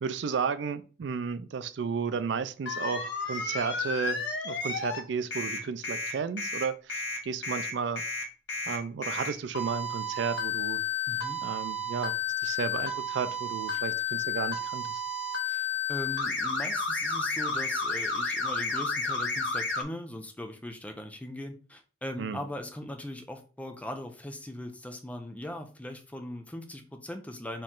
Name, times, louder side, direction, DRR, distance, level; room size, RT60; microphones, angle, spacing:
voice 1, 0.0-8.0 8.7-10.8 11.4-15.0 22.2-22.4, right 6 dB, 80° right, 0.4 m, -33 dB
sound 1, 2.7-5.0 5.3-19.8, left 3 dB, 85° left, 1.1 m, -32 dB
voice 2, 11.1-11.4 15.4-27.6, left 1 dB, 10° left, 0.6 m, -40 dB
4.4 x 3.1 x 3.7 m
head